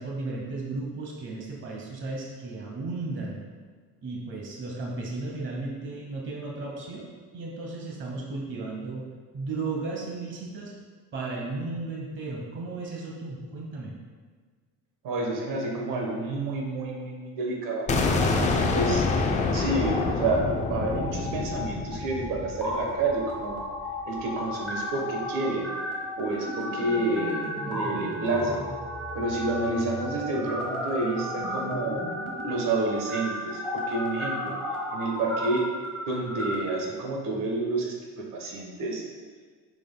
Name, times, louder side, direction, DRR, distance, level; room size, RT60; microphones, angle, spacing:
voice 1, 0.0-3.4 4.0-7.1 7.3-9.1 9.3-10.7 11.1-13.9, right 3 dB, 35° right, -2 dB, 1.0 m, -34 dB
voice 2, 15.0-17.9 18.4-19.0 19.5-23.6 24.1-25.7 26.2-28.6 29.1-32.0 32.4-34.6 34.9-35.7 36.1-39.1, right 2 dB, 70° right, 0 dB, 1.2 m, -29 dB
sound 1, 17.9-23.7, left 3 dB, 20° left, 0.4 m, -27 dB
sound 2, 18.1-19.4 19.7-20.0 20.5-36.5, left 1 dB, 5° left, 0.9 m, -34 dB
7.0 x 6.0 x 2.2 m, 1.5 s
cardioid pair, 160°, 34 cm